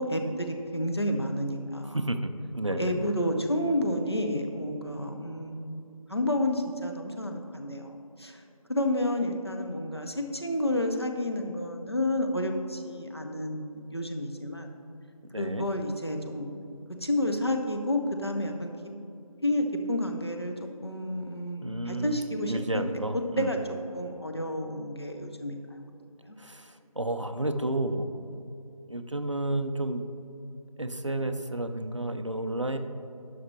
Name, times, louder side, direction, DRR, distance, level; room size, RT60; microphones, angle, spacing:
voice 1, 0.0-2.0 2.8-7.9 8.2-8.4 8.7-14.7 15.4-16.5 17.0-18.7 19.4-20.5 20.8-22.8 23.4-23.6 23.9-25.6 26.3-26.4, left 1 dB, 45° left, 3 dB, 0.7 m, -30 dB
voice 2, 1.9-3.1 15.3-15.7 21.6-22.2 22.5-23.5 26.4-28.4 28.9-30.0 30.8-32.8, right 1 dB, 55° right, 8 dB, 0.5 m, -31 dB
11.0 x 5.9 x 3.2 m, 2.6 s
figure-of-eight pair, 175°, 19 cm